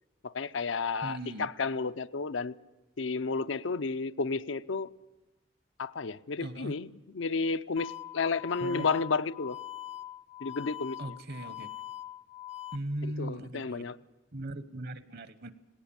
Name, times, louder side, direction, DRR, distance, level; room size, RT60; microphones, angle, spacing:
voice 1, 0.2-2.5 3.0-4.9 5.8-9.6 10.4-11.2 13.0-14.0, left 4 dB, 80° left, 12 dB, 0.6 m, -32 dB
voice 2, 1.0-1.5 6.4-6.7 8.6-8.9 11.0-11.7 12.7-13.9 14.3-15.5, right 1 dB, 60° right, 14 dB, 1.1 m, -38 dB
sound 1, 7.8-12.8, left 12 dB, 35° left, 0.6 m, -43 dB
18.5 x 18.5 x 8.7 m, 1.1 s
head